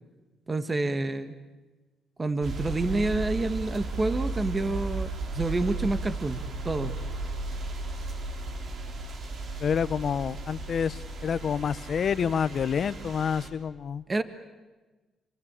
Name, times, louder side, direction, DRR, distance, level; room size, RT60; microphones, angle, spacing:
voice 1, 0.5-1.3 2.2-6.4 6.6-6.9 14.1-14.2, right 2 dB, 25° right, 10 dB, 1.5 m, -28 dB
sound 1, 2.4-13.5, right 2 dB, 55° right, 3.4 m, -35 dB
voice 2, 9.6-14.0, left 7 dB, 55° left, 16 dB, 0.8 m, -28 dB
27.0 x 23.5 x 8.9 m, 1.2 s
cardioid pair, 90°, 0 cm